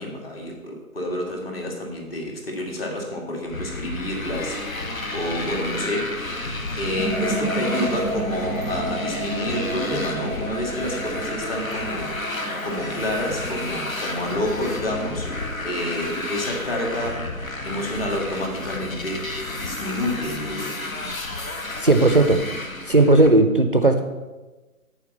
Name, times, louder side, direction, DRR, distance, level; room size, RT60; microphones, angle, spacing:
voice 1, 0.0-4.6 5.1-6.3 6.8-12.2 12.6-17.2 17.6-19.3 19.6-20.8, left 1 dB, 40° left, 1 dB, 2.0 m, -29 dB
Motorcycle, 3.5-23.3, left 2 dB, 65° left, 1.4 m, -31 dB
sound 1, 6.9-18.7, right 2 dB, 80° left, 3.2 m, -33 dB
voice 2, 21.8-22.4 22.9-24.0, right 2 dB, 40° right, 6 dB, 0.5 m, -16 dB
8.4 x 4.6 x 7.2 m, 1.2 s
figure-of-eight pair, 145°, 43 cm